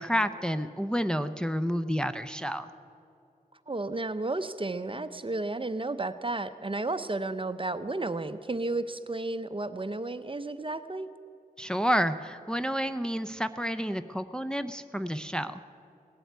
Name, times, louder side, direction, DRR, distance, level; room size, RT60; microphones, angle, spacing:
voice 1, 0.0-2.7 11.6-15.6, equal, 5° left, 9 dB, 0.6 m, -30 dB
voice 2, 3.7-11.1, right 2 dB, 35° right, 11 dB, 0.6 m, -32 dB
18.0 x 7.8 x 9.4 m, 2.6 s
wide cardioid pair, 55°, 16 cm